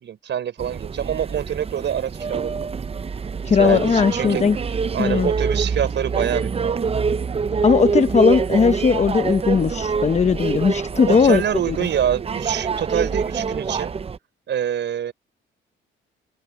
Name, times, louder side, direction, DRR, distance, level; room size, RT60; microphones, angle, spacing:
voice 1, 0.0-2.7 3.5-4.4 4.9-6.8 11.0-13.9 14.5-15.1, right 9 dB, 65° right, 6.1 m, -26 dB
sound 1, 0.6-14.2, right 5 dB, 30° right, 0.7 m, -25 dB
voice 2, 3.4-4.6 5.0-5.3 7.6-11.8, left 6 dB, 35° left, 1.0 m, -18 dB
cardioid pair, 90°, 20 cm